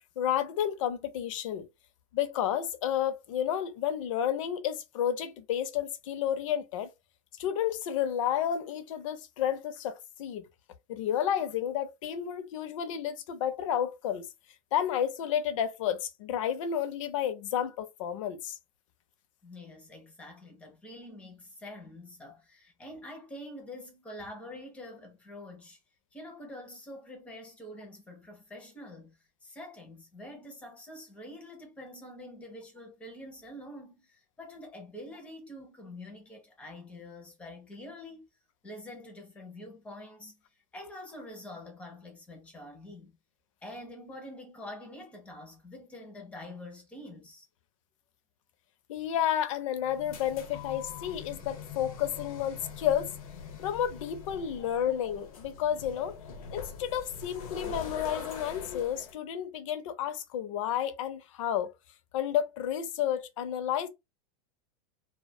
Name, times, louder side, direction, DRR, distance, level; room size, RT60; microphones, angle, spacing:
voice 1, 0.2-1.7 2.1-6.9 7.4-10.5 10.9-14.3 14.7-18.6 48.9-53.1 53.6-56.1 56.5-61.7 62.1-63.9, left 10 dB, 65° left, 0.5 m, -31 dB
voice 2, 19.4-25.8 26.1-38.3 38.6-40.4 40.7-43.2 43.6-47.5 54.6-54.7, left 1 dB, 5° left, 0.4 m, -46 dB
sound 1, 49.8-59.2, left 6 dB, 90° left, 0.8 m, -43 dB
2.4 x 2.1 x 2.6 m
supercardioid pair, 180°, 18 cm